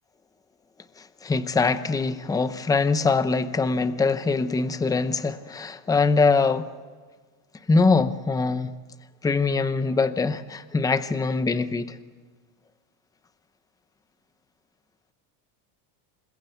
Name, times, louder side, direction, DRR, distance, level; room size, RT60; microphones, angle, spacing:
voice 1, 1.0-6.7 7.7-8.7 9.2-12.0, left 4 dB, 10° left, 0.7 m, -23 dB
28.0 x 21.5 x 8.0 m
cardioid pair, 155°, 47 cm